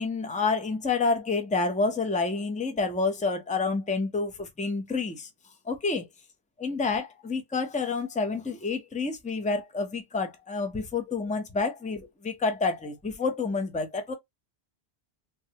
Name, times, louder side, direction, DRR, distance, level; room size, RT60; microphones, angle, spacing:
voice 1, 0.0-5.3 5.7-6.1 6.6-14.1, left 4 dB, 10° left, 0.4 m, -28 dB
3.5 x 2.0 x 2.7 m
omnidirectional pair, 1.1 m